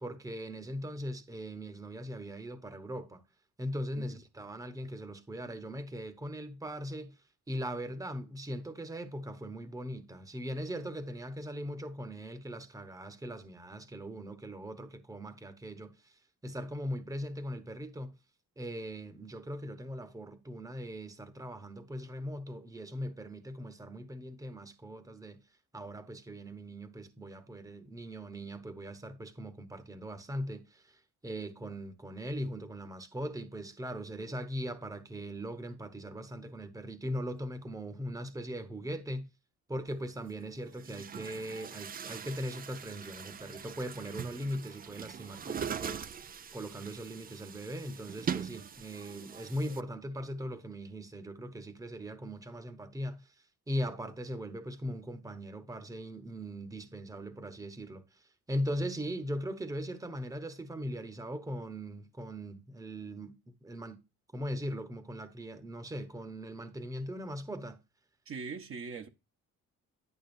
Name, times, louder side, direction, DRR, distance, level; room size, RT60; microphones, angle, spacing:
voice 1, 0.0-3.2 3.6-7.2 7.5-18.1 18.6-25.4 25.7-39.3 39.7-46.0 46.5-53.3 53.7-64.0 64.3-67.8, equal, 10° right, 1.0 m, -40 dB
Chatter / Gurgling / Tap, 39.9-40.0 40.7-49.8, right 7 dB, 30° right, 0.4 m, -42 dB
voice 2, 68.3-69.1, right 5 dB, 45° right, 1.1 m, -41 dB
11.0 x 6.2 x 2.6 m
cardioid pair, 90°, 30 cm